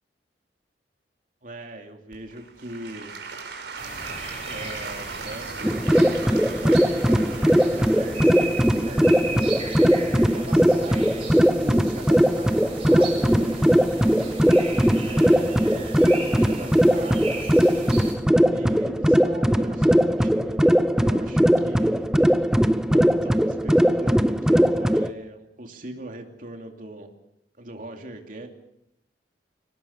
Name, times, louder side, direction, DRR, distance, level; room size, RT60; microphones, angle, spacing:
voice 1, 1.4-3.1 4.4-13.8 15.0-17.5 18.4-22.1 22.9-27.1 27.6-28.5, right 1 dB, 50° right, 3 dB, 2.8 m, -40 dB
Applause / Crowd, 2.1-11.0 11.6-11.7, right 4 dB, 75° right, 4.7 m, -39 dB
sound 1, 3.8-18.1, right 2 dB, 30° right, 7.9 m, -37 dB
sound 2, 5.6-25.1, equal, 5° right, 0.7 m, -20 dB
23.5 x 19.5 x 7.2 m, 0.83 s
head